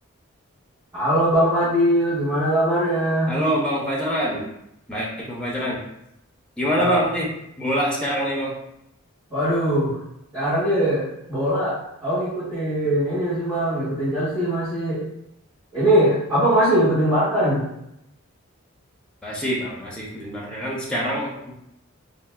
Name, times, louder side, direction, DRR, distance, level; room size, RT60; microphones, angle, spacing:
voice 1, 0.9-3.3 6.7-7.0 9.3-9.9 10.3-15.0 15.7-17.6, right 1 dB, 20° right, -15 dB, 1.4 m, -21 dB
voice 2, 3.3-4.5 4.9-5.8 6.6-7.3 7.6-8.5 19.2-21.5, equal, 5° left, -4 dB, 0.5 m, -25 dB
4.0 x 2.0 x 2.2 m, 0.81 s
head